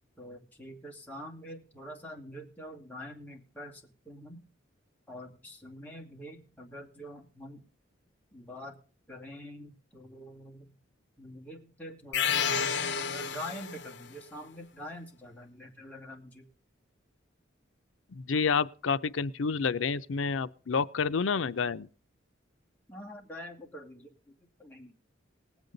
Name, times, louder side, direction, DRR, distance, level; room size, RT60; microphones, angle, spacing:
voice 1, 0.2-4.5 5.1-7.6 8.3-8.8 9.1-10.7 11.2-16.4 22.9-24.1 24.6-25.0, equal, 10° left, 2.3 m, -45 dB
sound 1, 12.1-14.0, left 7 dB, 60° left, 1.0 m, -30 dB
voice 2, 18.1-21.9, left 5 dB, 85° left, 0.5 m, -29 dB
19.5 x 8.1 x 3.9 m
head